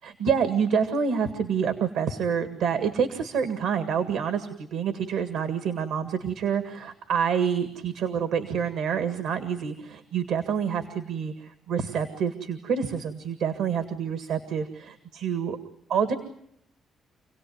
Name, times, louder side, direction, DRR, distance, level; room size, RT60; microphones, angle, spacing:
voice 1, 0.0-15.6 15.9-16.2, right 7 dB, 85° right, 9 dB, 1.8 m, -27 dB
27.5 x 17.5 x 9.4 m, 0.73 s
cardioid pair, 90°, 0 cm